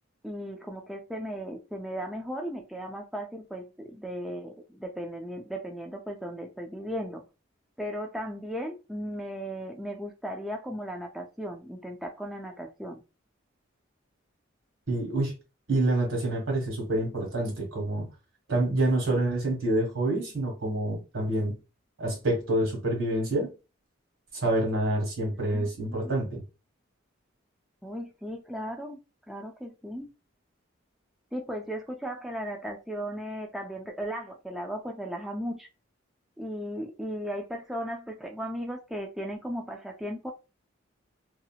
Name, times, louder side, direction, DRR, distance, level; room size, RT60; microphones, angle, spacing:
voice 1, 0.2-7.2 7.8-13.0 25.3-26.1 27.8-29.0 29.3-30.1 31.3-35.7 36.4-40.3, equal, ahead, 0.3 m, -36 dB
voice 2, 14.9-15.3 15.7-18.1 18.5-21.6 22.0-23.5 24.4-26.4, right 1 dB, 85° right, 1.6 m, -27 dB
2.8 x 2.7 x 2.3 m
head